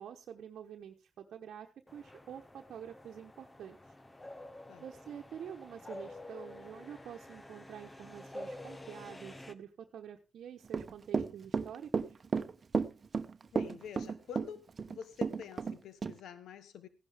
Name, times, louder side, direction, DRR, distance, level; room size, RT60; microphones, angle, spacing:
voice 1, 0.0-3.8 4.8-12.2, right 9 dB, 75° right, 1 dB, 1.1 m, -47 dB
sound 1, 1.9-9.5, left 1 dB, 25° left, 1.2 m, -49 dB
Run / Walk footsteps, 10.7-15.7 16.0-16.1, right 5 dB, 50° right, 1.0 m, -32 dB
voice 2, 13.5-14.6 14.9-16.9, left 7 dB, 80° left, 13 dB, 1.1 m, -47 dB
15.5 x 11.0 x 3.5 m, 0.28 s
supercardioid pair, 55°, 0 cm